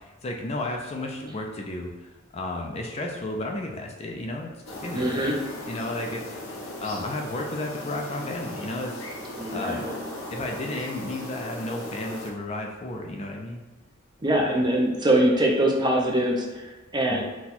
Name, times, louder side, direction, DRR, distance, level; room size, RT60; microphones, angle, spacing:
voice 1, 0.0-5.4 5.7-9.1 9.5-9.9 10.3-13.6 14.3-14.5 17.1-17.2, left 2 dB, 30° left, 1 dB, 0.4 m, -33 dB
sound 1, 4.7-12.3, left 1 dB, 80° left, 0.8 m, -37 dB
voice 2, 4.9-5.3 9.4-9.9 14.2-17.2, right 1 dB, 20° right, -1 dB, 0.6 m, -23 dB
4.1 x 2.3 x 4.2 m, 1.2 s
head